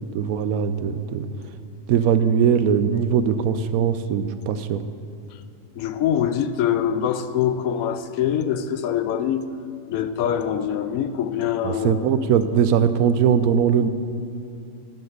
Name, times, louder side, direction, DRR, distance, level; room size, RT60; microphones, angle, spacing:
voice 1, 0.1-1.3 1.9-4.8 11.6-13.9, right 7 dB, 90° right, 12 dB, 1.0 m, -20 dB
voice 2, 5.8-9.5 9.9-12.1, left 9 dB, 85° left, 12 dB, 1.0 m, -24 dB
13.0 x 6.0 x 6.5 m, 2.5 s
omnidirectional pair, 1.5 m